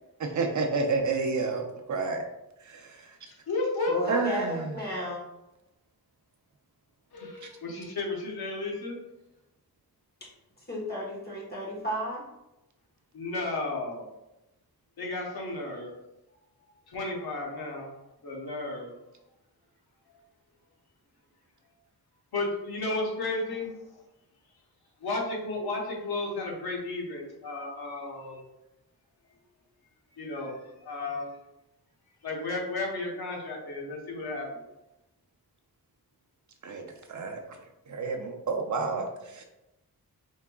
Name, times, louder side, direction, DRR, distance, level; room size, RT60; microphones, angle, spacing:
voice 1, 0.2-2.2 2.6-3.2 4.1-4.8 36.6-37.4 37.9-39.4, right 4 dB, 50° right, 3 dB, 0.5 m, -30 dB
voice 2, 3.3-4.0 7.1-9.0 13.1-14.1 15.0-15.9 16.6-19.0 20.1-20.2 22.3-24.0 25.0-28.5 30.2-31.4 32.2-34.7, left 2 dB, 80° left, -1 dB, 1.0 m, -33 dB
voice 3, 3.9-5.2 10.7-12.2, equal, 25° left, -4 dB, 1.2 m, -33 dB
4.6 x 3.4 x 2.3 m, 0.93 s
wide cardioid pair, 150°, 37 cm